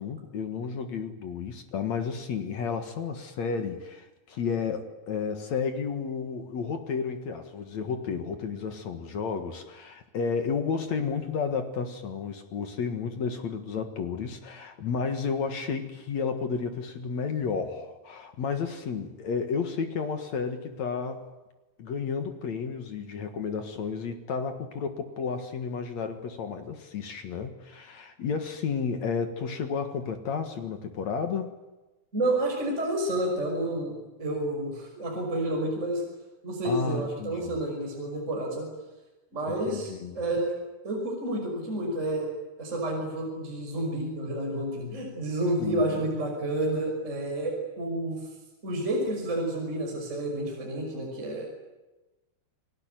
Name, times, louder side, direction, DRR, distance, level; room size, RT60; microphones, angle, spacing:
voice 1, 0.0-21.3 21.8-31.5 36.6-37.5 39.5-40.2 45.6-46.0, left 5 dB, 55° left, 7 dB, 2.3 m, -32 dB
voice 2, 32.1-36.0 36.4-38.7 39.3-40.5 40.8-42.3 42.6-48.2 48.6-51.5, right 1 dB, 15° right, 0 dB, 5.9 m, -30 dB
29.5 x 19.5 x 9.2 m, 1.1 s
omnidirectional pair, 4.9 m